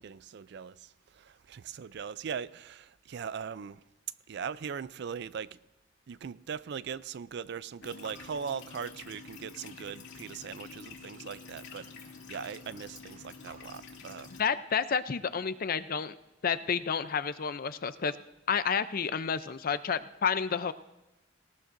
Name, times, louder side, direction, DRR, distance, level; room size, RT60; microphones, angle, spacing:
voice 1, 0.0-3.8 4.3-5.6 6.1-14.3, right 6 dB, 65° right, 0.4 m, -40 dB
sound 1, 7.8-14.4, left 5 dB, 70° left, 2.5 m, -48 dB
voice 2, 14.4-16.1 16.4-18.1 18.5-20.7, left 6 dB, 50° left, 0.5 m, -30 dB
19.0 x 18.0 x 2.6 m
head